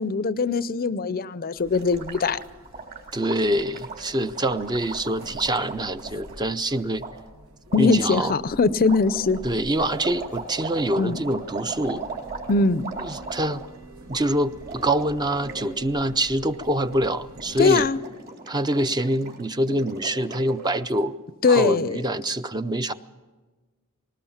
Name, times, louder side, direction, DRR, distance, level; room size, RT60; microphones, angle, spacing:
voice 1, 0.0-2.4 7.7-9.4 11.0-11.2 12.5-12.9 17.6-18.0 21.4-22.0, left 4 dB, 45° left, 16 dB, 0.5 m, -21 dB
sound 1, 1.6-17.9, right 1 dB, 80° right, 1.4 m, -46 dB
Gurgling, 1.7-6.3 7.0-7.1 7.7-8.0 8.8-13.8 14.0-14.2 14.5-15.7 15.9-16.1 16.5-17.0 17.3-20.7, right 4 dB, 45° right, 3.6 m, -38 dB
voice 2, 3.1-7.0 7.8-8.3 9.4-12.0 13.0-13.6 14.1-17.9 18.5-22.9, right 1 dB, 20° right, 11 dB, 0.5 m, -25 dB
20.0 x 19.0 x 7.2 m, 1.3 s
head